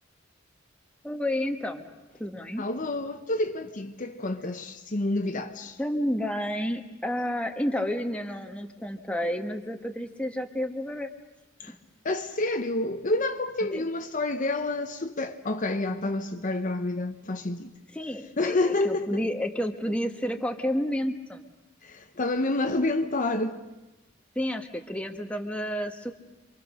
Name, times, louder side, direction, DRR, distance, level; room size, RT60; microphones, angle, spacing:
voice 1, 1.0-1.9 2.2-2.6 5.8-11.1 13.7-13.8 17.9-21.5 24.3-26.1, equal, 5° left, 1.5 m, -30 dB
voice 2, 2.6-5.8 11.6-11.7 12.0-17.7 18.4-19.2 21.8-23.6, left 2 dB, 40° left, 1.0 m, -28 dB
27.5 x 24.5 x 6.5 m
head